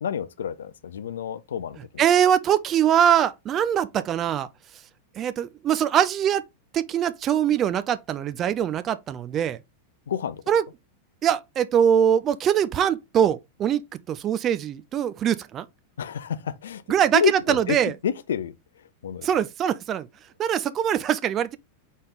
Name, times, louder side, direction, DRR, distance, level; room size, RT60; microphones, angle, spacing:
voice 1, 0.0-2.0 10.1-10.4 16.0-16.8 17.1-17.8 18.0-18.5 19.0-19.3, left 8 dB, 65° left, 0.4 m, -29 dB
voice 2, 2.0-4.5 5.1-6.4 6.7-9.6 10.5-10.6 11.2-15.7 16.9-17.9 19.2-20.1 20.4-21.6, right 9 dB, 30° right, 0.4 m, -22 dB
4.1 x 3.4 x 3.7 m
figure-of-eight pair, 90°, 0 cm